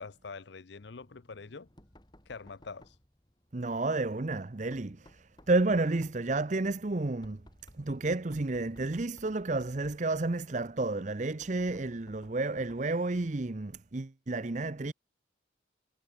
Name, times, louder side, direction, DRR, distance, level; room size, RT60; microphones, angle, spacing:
voice 1, 0.0-1.7 2.3-3.0, left 4 dB, 70° left, 0.7 m, -45 dB
Knock, 0.8-13.0, left 1 dB, 25° left, 3.5 m, -60 dB
voice 2, 3.5-7.4 7.8-14.9, right 2 dB, 40° right, 0.7 m, -31 dB
head